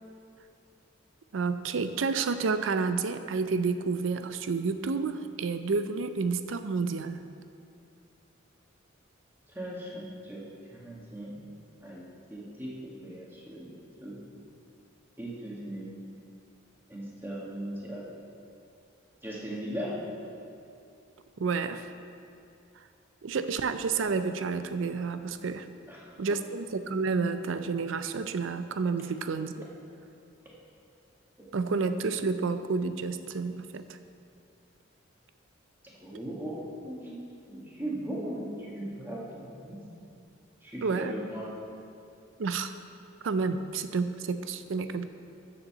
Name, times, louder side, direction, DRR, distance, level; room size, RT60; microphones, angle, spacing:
voice 1, 1.3-7.2 21.4-21.9 23.2-25.7 26.2-29.7 31.5-33.8 40.8-41.2 42.4-42.7 43.2-45.1, right 4 dB, 70° right, 10 dB, 0.5 m, -30 dB
voice 2, 9.5-11.4 11.8-13.7 14.0-14.2 15.2-15.9 16.9-18.1 19.2-19.9 25.9-26.2 31.4-31.5 35.8-37.1 37.5-39.8 40.6-41.5, right 1 dB, 10° right, -5 dB, 1.6 m, -38 dB
7.2 x 6.7 x 6.7 m, 2.5 s
head